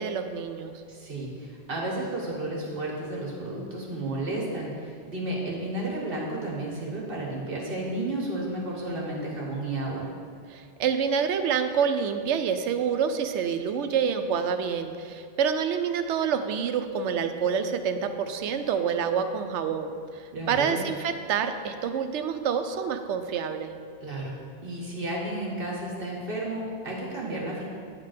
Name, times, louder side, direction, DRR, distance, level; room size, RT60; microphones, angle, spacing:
voice 1, 0.0-0.7 10.5-23.7, right 7 dB, 85° right, 8 dB, 0.9 m, -27 dB
voice 2, 0.9-10.1 20.3-20.8 24.0-24.4 24.6-27.6, right 2 dB, 55° right, -3 dB, 1.6 m, -32 dB
9.4 x 3.7 x 6.5 m, 2.2 s
omnidirectional pair, 1.2 m